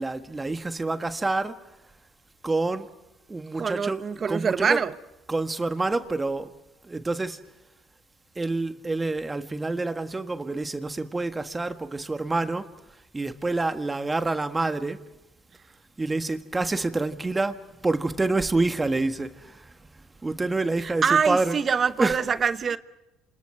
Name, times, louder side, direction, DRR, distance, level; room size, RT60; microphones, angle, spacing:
voice 1, 0.0-1.6 2.4-2.9 3.3-4.8 5.3-6.5 6.8-7.4 8.3-12.7 13.1-15.0 16.0-19.7 20.2-21.6 22.0-22.2, right 3 dB, 20° right, 1.6 m, -27 dB
voice 2, 3.6-4.9 20.8-22.8, right 6 dB, 40° right, 1.0 m, -24 dB
28.0 x 27.5 x 4.8 m
supercardioid pair, 80°, 0 cm